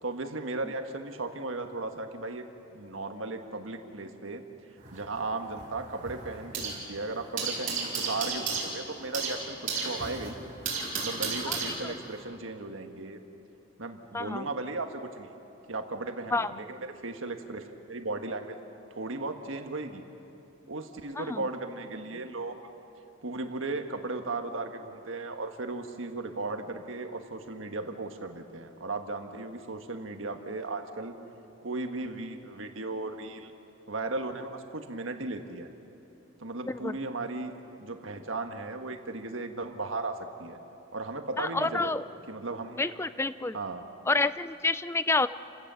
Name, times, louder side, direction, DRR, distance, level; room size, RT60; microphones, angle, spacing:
voice 1, 0.0-2.4 2.7-4.4 4.9-9.6 9.8-10.4 10.9-13.2 13.8-15.3 15.7-18.6 18.9-20.0 20.7-22.6 23.2-31.2 31.6-33.5 33.9-35.7 36.4-37.5 37.8-40.6 40.9-42.8 43.5-43.9, right 2 dB, 80° right, 5 dB, 1.5 m, -36 dB
sound 1, 4.8-6.9 7.1-12.2, right 4 dB, 40° right, 4.7 m, -34 dB
voice 2, 11.5-11.9 14.1-14.5 16.3-16.5 21.2-21.4 36.6-37.0 41.4-42.0 42.8-43.6 44.1-45.3, left 3 dB, 15° left, 14 dB, 0.4 m, -29 dB
29.0 x 16.5 x 7.0 m, 2.8 s
head